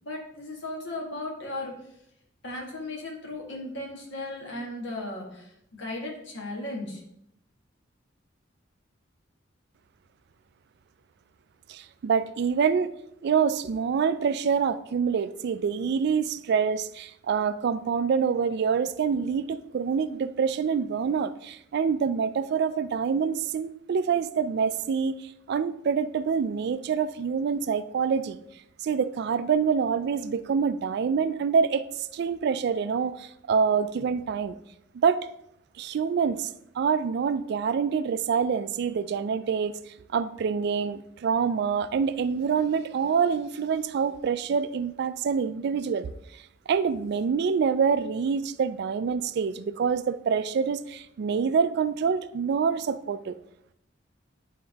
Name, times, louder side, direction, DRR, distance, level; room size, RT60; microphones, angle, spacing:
voice 1, 0.0-1.9 2.4-7.0, left 2 dB, 70° left, -1 dB, 1.7 m, -36 dB
voice 2, 11.7-12.9 13.2-28.4 28.8-34.5 35.0-35.3 35.8-36.5 36.8-39.8 40.1-46.1 46.7-53.4, right 6 dB, 60° right, 14 dB, 0.3 m, -26 dB
9.6 x 3.6 x 3.5 m, 0.77 s
head